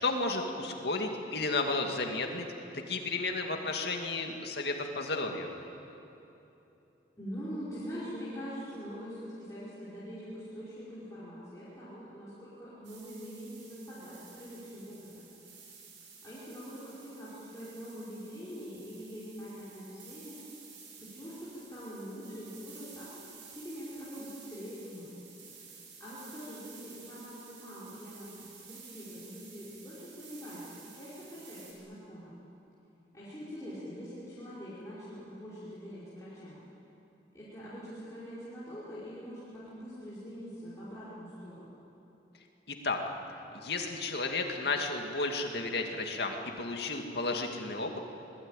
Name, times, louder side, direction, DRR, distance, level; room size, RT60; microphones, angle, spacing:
voice 1, 0.0-2.5 2.7-5.5 42.7-43.0 43.5-48.0, left 3 dB, 60° left, 3 dB, 2.3 m, -33 dB
voice 2, 7.2-15.3 16.2-20.4 21.0-23.1 23.5-25.1 26.0-32.4 33.1-36.6 37.3-41.7, equal, 15° left, -12 dB, 5.4 m, -44 dB
sound 1, 12.8-31.7, right 5 dB, 85° right, 6.2 m, -53 dB
25.5 x 20.0 x 9.2 m, 3.0 s
head